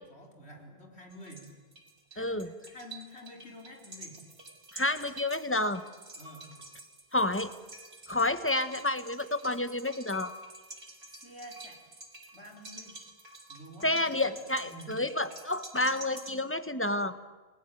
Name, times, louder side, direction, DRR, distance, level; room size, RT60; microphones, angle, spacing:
voice 1, 0.1-1.5 2.1-4.2 6.2-6.5 11.1-11.8 12.3-13.0 13.5-14.1 14.6-14.9, equal, 85° left, 2 dB, 4.5 m, -49 dB
sound 1, 1.1-16.4, right 2 dB, 75° right, 4.0 m, -49 dB
voice 2, 2.2-2.5 4.7-5.8 7.1-7.5 8.1-10.3 13.8-17.2, left 2 dB, 10° left, 11 dB, 1.2 m, -29 dB
29.5 x 20.5 x 9.2 m, 1.4 s
omnidirectional pair, 1.1 m